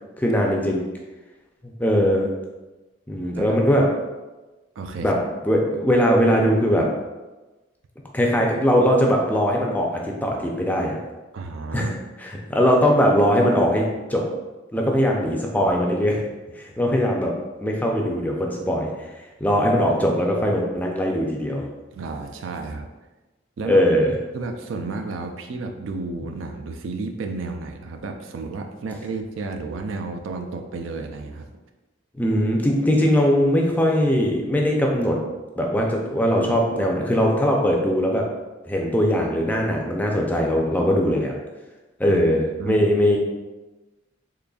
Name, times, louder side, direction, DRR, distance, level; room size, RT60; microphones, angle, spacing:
voice 1, 0.2-0.8 1.8-2.3 3.1-3.8 5.0-5.2 5.4-6.9 8.1-11.0 11.7-11.9 12.2-13.8 14.1-14.2 14.7-16.2 16.6-17.3 17.6-18.9 19.4-21.6 23.7-24.1 32.2-35.2 35.6-38.2 38.7-41.3 42.0-43.2, equal, 10° left, 0 dB, 0.4 m, -20 dB
voice 2, 4.8-5.2 11.3-11.9 21.9-22.9 23.6-23.8 24.3-31.5 42.0-42.2 42.6-42.9, right 3 dB, 75° right, 5 dB, 0.4 m, -32 dB
3.8 x 3.4 x 2.3 m, 1.1 s
head